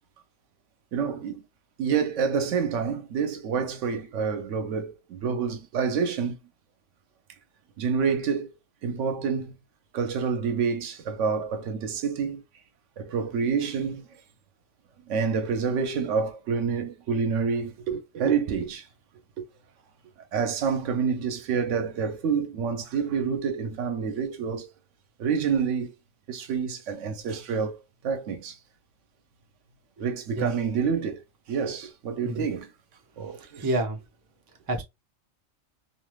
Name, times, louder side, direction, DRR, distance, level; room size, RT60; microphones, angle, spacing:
voice 1, 0.9-1.4 1.8-6.4 7.8-8.5 8.8-9.5 9.9-12.4 13.0-14.1 15.1-18.9 19.4-19.5 20.3-24.7 25.2-25.9 26.3-27.8 28.0-28.6 30.0-31.2 31.5-32.7 33.2-33.7, right 6 dB, 70° right, 0.9 m, -28 dB
voice 2, 33.4-34.0 34.7-34.8, right 1 dB, 35° right, 0.3 m, -28 dB
3.2 x 2.5 x 2.3 m
omnidirectional pair, 1.4 m